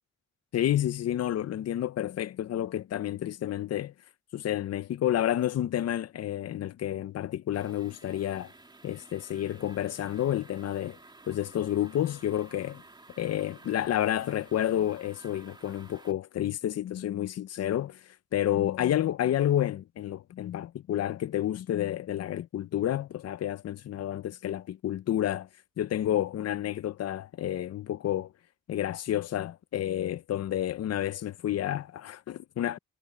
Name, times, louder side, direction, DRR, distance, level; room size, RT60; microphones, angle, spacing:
voice 1, 0.5-3.9 4.3-8.5 8.8-11.0 11.3-12.8 13.2-25.5 25.8-28.3 28.7-32.8, left 11 dB, 55° left, 0.6 m, -30 dB
sound 1, 7.5-16.1, right 2 dB, 15° right, 2.5 m, -53 dB
wide cardioid pair, 150°, 31 cm